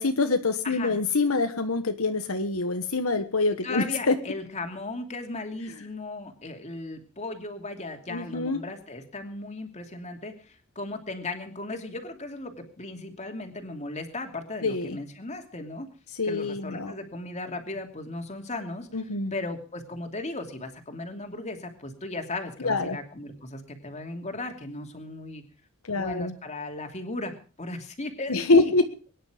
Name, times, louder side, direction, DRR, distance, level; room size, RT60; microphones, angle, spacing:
voice 1, 0.0-4.1 8.1-8.6 14.6-15.0 16.1-16.9 18.9-19.3 22.6-23.0 25.9-26.3 28.3-28.9, left 3 dB, 80° left, 7 dB, 1.3 m, -25 dB
voice 2, 0.6-1.0 3.6-15.9 16.2-18.9 19.3-25.4 25.9-28.7, left 2 dB, 35° left, 5 dB, 2.7 m, -36 dB
22.5 x 10.5 x 5.0 m, 0.38 s
head